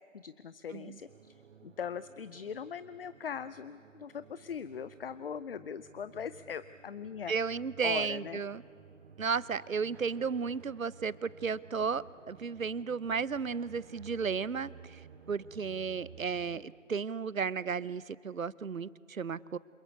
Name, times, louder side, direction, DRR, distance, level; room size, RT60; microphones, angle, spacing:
voice 1, 0.1-1.3 1.6-7.3 7.8-8.4, left 7 dB, 45° left, 15 dB, 0.7 m, -40 dB
sound 1, 1.0-16.6, right 6 dB, 55° right, 1.4 m, -55 dB
voice 2, 7.3-8.6 9.2-19.6, right 5 dB, 85° right, 21 dB, 0.9 m, -34 dB
sound 2, 9.9-16.8, right 2 dB, 5° right, 4.5 m, -69 dB
27.0 x 21.5 x 8.2 m, 2.4 s
figure-of-eight pair, 150°, 39 cm